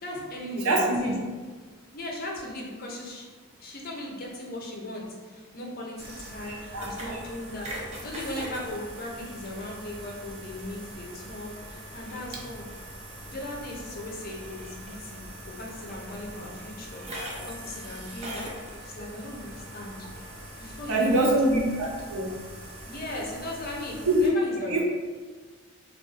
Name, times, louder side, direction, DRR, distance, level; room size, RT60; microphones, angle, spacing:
voice 1, 0.0-1.1 1.9-3.3 3.6-7.7 8.0-12.7 13.2-15.2 15.5-17.0 17.3-18.4 18.8-20.1 20.6-21.4 22.8-24.8, left 1 dB, 40° left, -2 dB, 0.6 m, -38 dB
voice 2, 0.6-1.1 6.7-7.2 20.9-22.3 24.0-24.3 24.6-24.8, right 1 dB, 90° right, -2 dB, 0.7 m, -24 dB
sound 1, 6.0-24.3, right 1 dB, 30° right, 0.5 m, -42 dB
2.6 x 2.4 x 3.8 m, 1.4 s
head